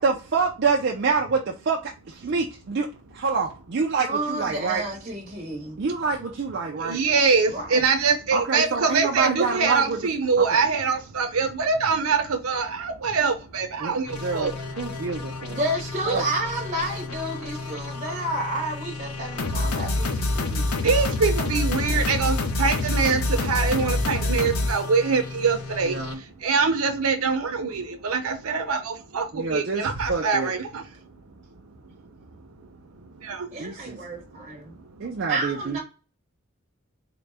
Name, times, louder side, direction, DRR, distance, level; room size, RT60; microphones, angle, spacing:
voice 1, 0.0-2.9 3.1-4.8 5.8-7.0 8.3-10.0 10.4-10.6 13.8-15.6 16.1-16.2 25.8-26.2 29.3-30.5 33.6-34.0 35.0-35.8, right 4 dB, 50° right, 0.4 m, -27 dB
voice 2, 4.0-5.8 7.5-7.8 15.5-20.8 33.5-34.4 35.3-35.8, right 1 dB, 30° right, 1.1 m, -30 dB
voice 3, 6.8-14.5 20.8-30.9 33.2-33.5, right 5 dB, 85° right, 0.7 m, -24 dB
sound 1, 14.1-26.1, left 2 dB, 85° left, 0.6 m, -28 dB
3.9 x 2.1 x 3.3 m
head